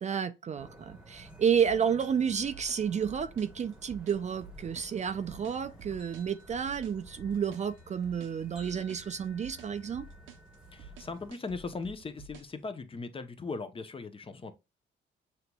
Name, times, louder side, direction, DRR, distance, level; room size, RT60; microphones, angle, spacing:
voice 1, 0.0-10.1, right 7 dB, 35° right, 0.4 m, -31 dB
sound 1, 0.6-11.3, right 1 dB, 5° right, 1.1 m, -52 dB
sound 2, 1.7-12.6, right 4 dB, 80° right, 0.7 m, -51 dB
voice 2, 10.7-14.5, left 4 dB, 25° left, 0.6 m, -39 dB
6.5 x 2.9 x 2.2 m
cardioid pair, 90°, 20 cm